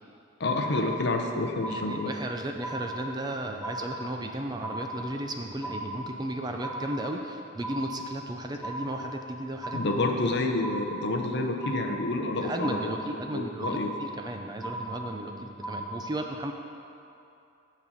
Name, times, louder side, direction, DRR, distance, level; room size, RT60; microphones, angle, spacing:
voice 1, 0.4-2.1 9.7-13.0 13.3-13.9, left 2 dB, 55° left, 4 dB, 0.7 m, -28 dB
sound 1, 0.6-1.3 1.6-2.3 2.6-3.3 3.6-4.3 4.6-5.3 5.6-6.3 6.6-7.3 7.6-8.3 8.6-9.3 9.6-10.3 10.6-11.3 11.6-12.3 12.6-13.3 13.6-14.3 14.6-15.3 15.6-15.9, right 1 dB, ahead, 0.7 m, -37 dB
voice 2, 1.7-9.8 12.4-16.5, right 1 dB, 20° right, 3 dB, 0.4 m, -35 dB
9.4 x 4.1 x 7.1 m, 2.7 s
head